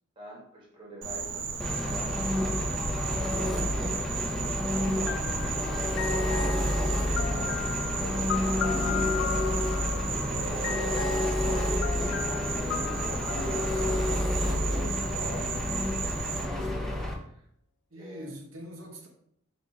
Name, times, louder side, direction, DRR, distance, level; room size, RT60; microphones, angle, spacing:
voice 1, 0.2-4.1 4.7-5.4 7.2-7.5 8.5-9.1 10.2-17.3 17.9-18.3, right 1 dB, 25° right, -3 dB, 1.2 m, -43 dB
Insect, 1.0-16.4, right 5 dB, 65° right, 0.5 m, -35 dB
Engine, 1.6-17.1, left 1 dB, ahead, 0.4 m, -29 dB
sound 1, 5.1-14.9, left 8 dB, 65° left, 0.3 m, -36 dB
voice 2, 6.3-6.8 7.2-7.7 17.9-19.1, equal, 80° right, 1 dB, 0.9 m, -43 dB
4.0 x 2.5 x 4.1 m, 0.70 s
head